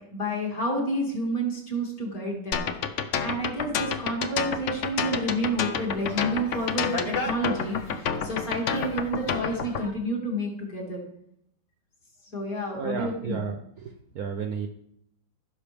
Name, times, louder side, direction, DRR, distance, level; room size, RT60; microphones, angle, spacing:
voice 1, 0.1-2.6 3.2-11.0 12.3-13.4, right 1 dB, 45° left, -2 dB, 2.9 m, -29 dB
sound 1, 2.5-9.8, left 7 dB, 65° left, 0.7 m, -29 dB
sound 2, 4.8-9.9, left 2 dB, 25° left, 1.0 m, -39 dB
voice 2, 12.8-14.7, right 6 dB, 65° right, 5 dB, 1.0 m, -33 dB
15.5 x 6.4 x 3.5 m, 0.74 s
omnidirectional pair, 2.1 m